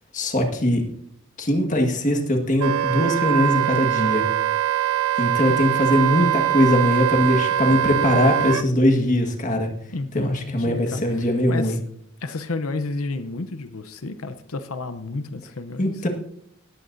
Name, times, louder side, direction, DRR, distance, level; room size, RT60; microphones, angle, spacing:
voice 1, 0.1-0.9 1.4-4.2 5.2-9.7 10.1-11.8 15.8-16.1, left 1 dB, 35° left, 3 dB, 1.7 m, -21 dB
Wind instrument woodwind instrument, 2.6-8.6, right 11 dB, 80° right, 0.5 m, -22 dB
voice 2, 9.9-11.8 12.2-15.9, left 3 dB, 85° left, 11 dB, 0.8 m, -31 dB
18.5 x 14.0 x 2.7 m, 0.70 s
head